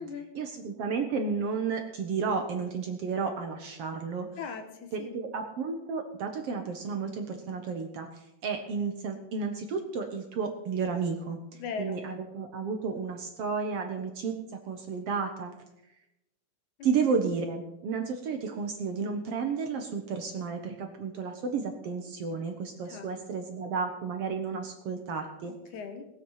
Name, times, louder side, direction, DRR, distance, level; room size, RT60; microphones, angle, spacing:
voice 1, 0.3-4.3 4.9-15.5 16.8-25.5, right 5 dB, 60° right, 4 dB, 1.7 m, -32 dB
voice 2, 4.4-5.2 11.6-12.0 16.8-16.9 22.9-23.4 25.7-26.1, left 5 dB, 70° left, 6 dB, 2.7 m, -39 dB
19.0 x 8.0 x 5.6 m, 0.90 s
omnidirectional pair, 3.6 m